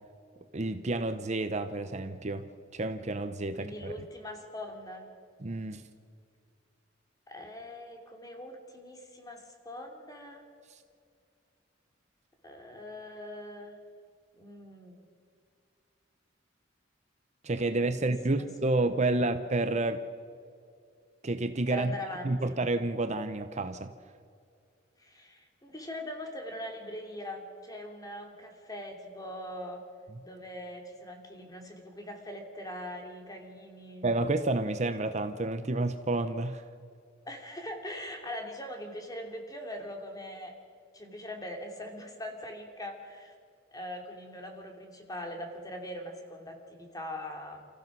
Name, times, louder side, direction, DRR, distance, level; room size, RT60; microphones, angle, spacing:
voice 1, 0.5-2.5 2.7-4.0 5.4-5.9 17.4-20.0 21.2-21.9 22.2-23.9 34.0-36.7, right 2 dB, 35° right, 9 dB, 0.8 m, -30 dB
voice 2, 3.5-5.1 7.3-10.4 12.4-13.8 14.3-15.0 17.7-18.5 18.7-19.3 21.7-22.6 25.0-29.8 30.2-34.0 37.2-40.5 40.9-43.3 43.7-47.7, left 1 dB, 20° left, 3 dB, 2.8 m, -42 dB
29.5 x 15.0 x 6.2 m, 2.3 s
head